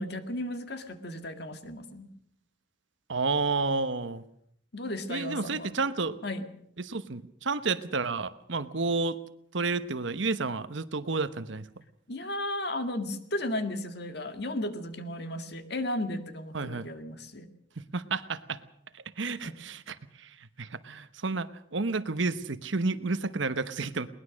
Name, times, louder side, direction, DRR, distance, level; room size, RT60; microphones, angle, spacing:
voice 1, 0.0-2.1 4.7-5.7 6.2-6.5 12.1-17.5 19.4-19.6, left 1 dB, 55° left, 8 dB, 2.0 m, -34 dB
voice 2, 3.1-4.2 5.1-6.2 6.8-9.2 9.5-11.6 16.5-16.9 17.8-18.6 18.9-24.1, right 3 dB, 70° right, 13 dB, 1.1 m, -31 dB
21.5 x 19.5 x 6.4 m, 0.67 s
head